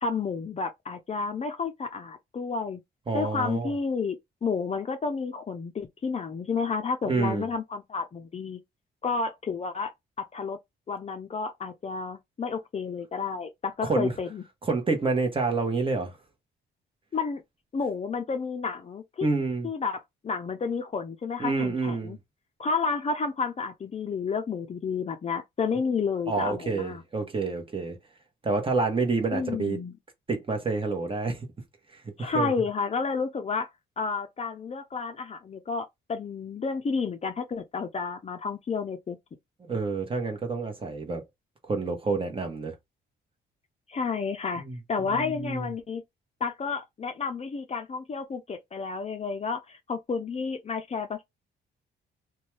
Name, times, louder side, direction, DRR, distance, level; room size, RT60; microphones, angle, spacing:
voice 1, 0.0-2.8 3.1-8.6 9.0-9.9 10.2-10.6 10.9-14.4 17.1-17.4 17.7-19.3 19.6-22.2 22.6-27.0 29.3-29.9 32.2-33.7 34.0-39.2 43.9-44.6 44.9-46.0 46.4-51.2, left 5 dB, 35° left, 0.5 m, -31 dB
voice 2, 3.1-3.7 7.0-7.5 13.8-14.1 14.6-16.2 19.2-19.7 21.4-22.2 26.3-28.0 28.4-29.8 30.3-31.5 31.9-32.5 39.7-41.2 41.7-42.7 44.6-44.8 45.1-45.7, right 3 dB, 25° right, 1.0 m, -28 dB
2.7 x 2.3 x 3.1 m
cardioid pair, 90°, 20 cm